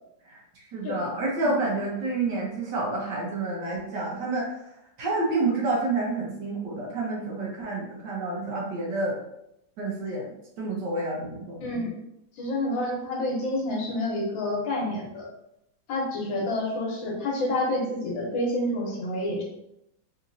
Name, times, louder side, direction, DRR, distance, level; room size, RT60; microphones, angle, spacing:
voice 1, 0.3-4.6 5.0-9.2 9.8-11.6, right 2 dB, 65° right, -2 dB, 1.3 m, -29 dB
voice 2, 11.6-11.9 12.4-15.2 15.9-19.4, left 1 dB, 70° left, -2 dB, 1.6 m, -28 dB
3.7 x 2.8 x 2.6 m, 0.82 s
omnidirectional pair, 2.2 m